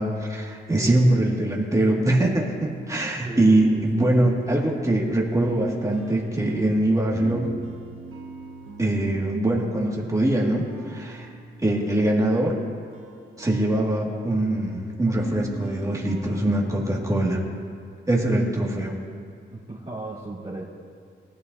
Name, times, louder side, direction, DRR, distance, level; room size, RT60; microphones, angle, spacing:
voice 1, 0.0-7.5 8.8-11.3 11.6-12.6 13.4-17.4 18.1-19.0, right 1 dB, 15° right, -3 dB, 2.0 m, -23 dB
voice 2, 3.2-4.3 19.5-20.7, right 2 dB, 30° right, -9 dB, 2.3 m, -36 dB
sound 1, 5.4-17.4, right 3 dB, 75° right, 1.0 m, -41 dB
19.0 x 12.0 x 2.7 m, 2.2 s
wide cardioid pair, 105°, 21 cm